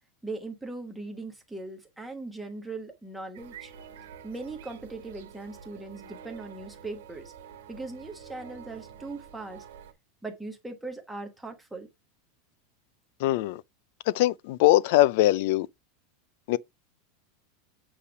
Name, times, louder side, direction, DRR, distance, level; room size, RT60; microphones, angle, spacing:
voice 1, 0.2-3.7 4.2-7.3 7.7-9.6 10.2-11.9, right 3 dB, 5° right, 1.3 m, -39 dB
sound 1, 3.3-9.9, right 8 dB, 75° right, 1.6 m, -48 dB
voice 2, 13.2-13.6 14.1-15.7 16.5-16.6, left 16 dB, 55° left, 0.4 m, -22 dB
8.4 x 3.3 x 5.0 m
supercardioid pair, 170°, 0 cm